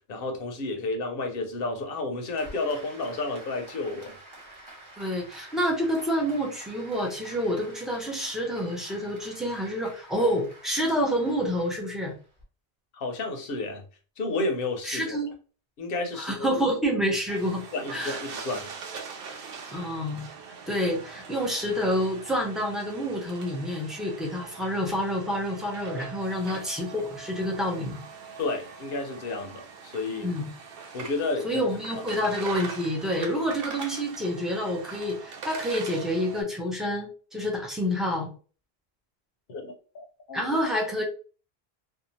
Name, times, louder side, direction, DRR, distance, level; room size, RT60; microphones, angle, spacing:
voice 1, 0.0-4.2 12.9-13.8 14.2-15.2 15.8-16.5 17.7-18.7 28.4-30.4 30.9-31.6 39.5-40.6, left 3 dB, 65° left, 0.9 m, -31 dB
Applause, 2.4-12.4, right 1 dB, 30° right, 0.9 m, -49 dB
voice 2, 5.0-12.1 14.9-15.3 16.2-17.6 17.9-18.2 19.7-20.3 20.7-28.0 30.2-30.5 31.4-38.3 40.3-41.0, equal, ahead, 0.5 m, -28 dB
sound 1, 17.3-36.4, right 5 dB, 70° right, 0.8 m, -42 dB
2.7 x 2.3 x 2.8 m
omnidirectional pair, 1.0 m